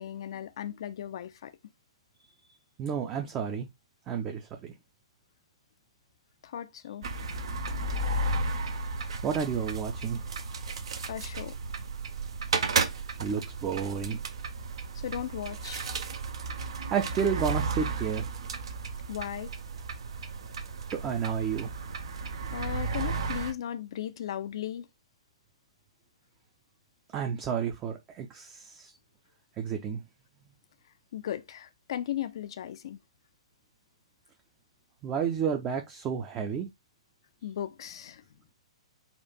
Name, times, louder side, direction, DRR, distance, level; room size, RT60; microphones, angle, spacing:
voice 1, 0.0-1.5 6.4-7.1 11.1-11.6 14.9-15.9 19.1-19.5 22.5-24.9 31.1-33.0 37.4-38.2, left 11 dB, 55° left, 0.5 m, -36 dB
voice 2, 2.8-3.7 4.1-4.7 9.2-10.2 13.2-14.2 16.9-18.3 20.9-21.7 27.1-28.9 29.6-30.0 35.0-36.7, right 7 dB, 25° right, 0.6 m, -31 dB
sound 1, 7.0-23.5, right 3 dB, 60° right, 0.8 m, -33 dB
4.4 x 2.5 x 4.0 m
figure-of-eight pair, 115°, 3 cm